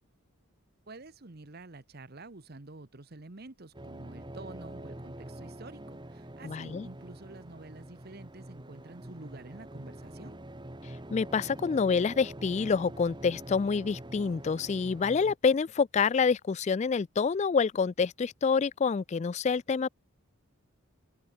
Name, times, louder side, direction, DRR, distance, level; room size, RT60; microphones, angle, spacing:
voice 1, 0.9-10.4, right 2 dB, 45° right, 1.1 m, -48 dB
sound 1, 3.7-15.4, right 1 dB, 20° right, 1.4 m, -45 dB
voice 2, 6.4-6.9 11.1-19.9, left 5 dB, 30° left, 0.3 m, -27 dB
head